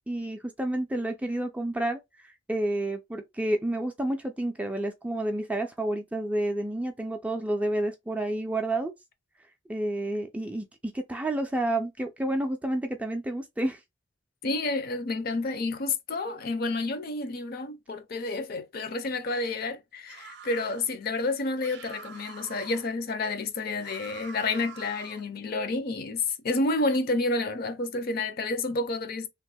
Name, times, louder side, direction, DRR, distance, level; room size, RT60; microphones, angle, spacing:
voice 1, 0.0-8.9 9.7-13.8, right 1 dB, 5° right, 0.3 m, -30 dB
voice 2, 14.4-29.3, left 2 dB, 50° left, 0.5 m, -30 dB
sound 1, 20.1-20.9 21.6-22.9 23.8-25.3, right 6 dB, 55° right, 0.5 m, -46 dB
3.0 x 2.0 x 3.2 m
head